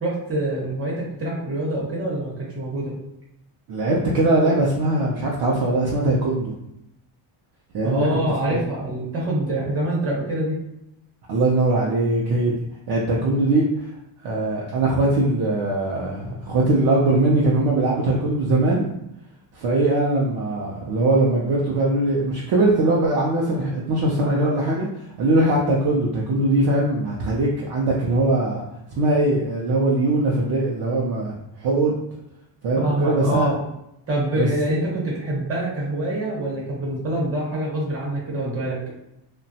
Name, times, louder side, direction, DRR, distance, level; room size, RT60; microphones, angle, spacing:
voice 1, 0.0-2.9 7.8-10.6 32.8-33.6 34.1-38.8, right 1 dB, 30° right, -4 dB, 0.9 m, -25 dB
voice 2, 3.7-6.5 7.7-8.1 8.5-8.6 11.3-13.7 14.2-18.9 19.5-28.6 28.9-32.0 32.6-33.5 34.4-34.5, right 2 dB, 55° right, -3 dB, 0.5 m, -21 dB
2.9 x 2.2 x 2.7 m, 0.84 s
cardioid pair, 160°, 47 cm